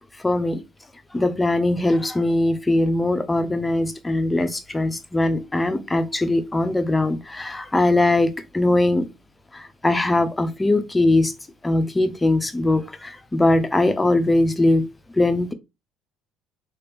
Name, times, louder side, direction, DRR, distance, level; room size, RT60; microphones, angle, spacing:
voice 1, 0.2-0.6 1.1-9.1 9.5-11.3 11.6-14.8 15.1-15.5, left 2 dB, 15° left, 0.6 m, -21 dB
2.8 x 2.4 x 3.3 m
hypercardioid pair, 70°, 0 cm